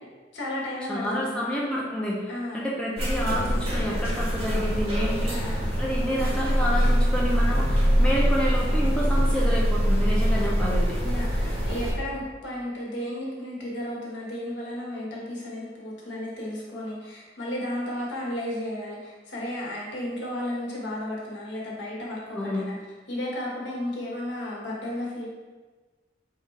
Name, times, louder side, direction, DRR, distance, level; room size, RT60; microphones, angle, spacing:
voice 1, 0.3-1.5 2.3-2.7 5.2-5.7 11.0-22.8 23.1-25.3, left 1 dB, 75° left, -4 dB, 1.0 m, -33 dB
voice 2, 0.9-11.0 22.3-22.6, equal, 5° left, -5 dB, 0.4 m, -29 dB
sound 1, 3.0-11.9, equal, 35° right, 0.8 m, -23 dB
3.6 x 2.4 x 4.0 m, 1.3 s
head